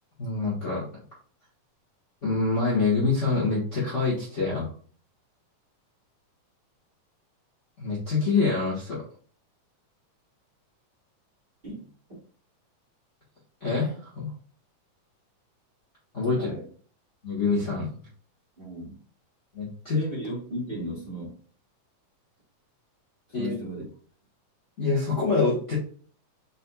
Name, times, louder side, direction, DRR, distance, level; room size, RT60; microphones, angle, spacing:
voice 1, 0.2-0.8 2.2-4.7 7.8-9.0 13.6-14.3 16.1-16.5 17.2-17.9 19.5-20.0 23.3-23.5 24.8-25.7, left 4 dB, 85° left, -7 dB, 0.6 m, -26 dB
voice 2, 18.6-18.9 19.9-21.4 23.3-23.8, right 1 dB, 25° right, -7 dB, 1.3 m, -35 dB
5.4 x 4.2 x 2.3 m, 0.44 s
omnidirectional pair, 3.8 m